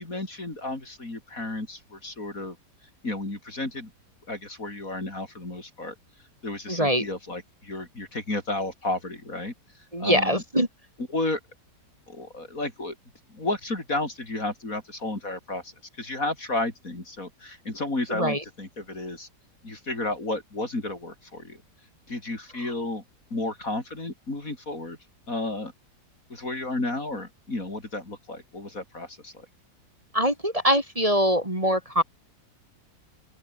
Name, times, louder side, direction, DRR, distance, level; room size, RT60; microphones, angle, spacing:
voice 1, 0.0-2.6 3.0-3.9 4.3-6.0 6.4-9.5 10.0-10.4 11.1-11.4 12.1-13.0 13.3-15.7 16.0-19.3 19.6-21.6 22.1-23.0 23.3-25.0 25.3-25.7 26.3-29.5, left 2 dB, 50° left, 5.5 m, -32 dB
voice 2, 6.7-7.0 9.9-10.7 18.1-18.4 22.6-22.7 30.1-32.0, equal, 20° right, 4.9 m, -23 dB
open air
omnidirectional pair, 1.9 m